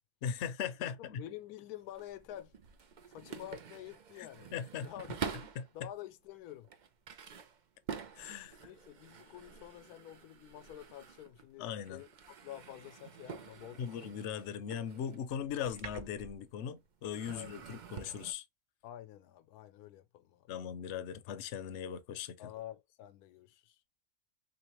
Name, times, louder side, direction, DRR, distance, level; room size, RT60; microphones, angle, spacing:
voice 1, 0.2-1.2 4.2-4.9 5.6-5.9 8.2-8.7 11.6-12.0 13.8-18.4 20.5-22.4, left 8 dB, 60° left, 0.8 m, -39 dB
voice 2, 0.8-2.5 3.1-4.5 4.8-5.4 5.7-6.7 8.5-12.1 12.4-14.0 15.6-15.7 17.3-17.5 18.8-20.5 22.4-23.8, left 13 dB, 85° left, 1.1 m, -49 dB
sound 1, 1.8-5.7 6.3-11.6 11.8-16.7 17.0-18.3, right 6 dB, 85° right, 0.4 m, -47 dB
3.7 x 3.1 x 2.9 m
omnidirectional pair, 1.6 m